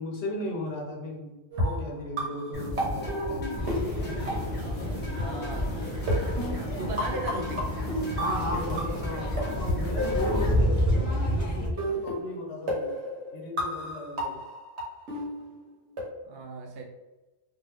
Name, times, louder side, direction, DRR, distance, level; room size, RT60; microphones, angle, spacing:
voice 1, 0.0-1.3 1.6-3.7 4.7-5.1 5.8-5.9 6.7-7.2 8.2-12.9 13.3-14.4, left 2 dB, 70° left, 0 dB, 1.0 m, -36 dB
sound 1, 1.5-4.9 5.2-5.3 6.1-9.1 9.4-11.0 11.8-16.0, equal, 85° right, 1.2 m, -32 dB
sound 2, 2.5-10.5, left 1 dB, 10° left, 0.7 m, -35 dB
sound 3, 3.6-11.7, equal, 20° right, 0.8 m, -30 dB
voice 2, 5.1-5.9 6.8-7.7 16.2-16.8, right 3 dB, 70° right, 2 dB, 0.8 m, -37 dB
2.7 x 2.4 x 3.3 m, 1.1 s
omnidirectional pair, 1.1 m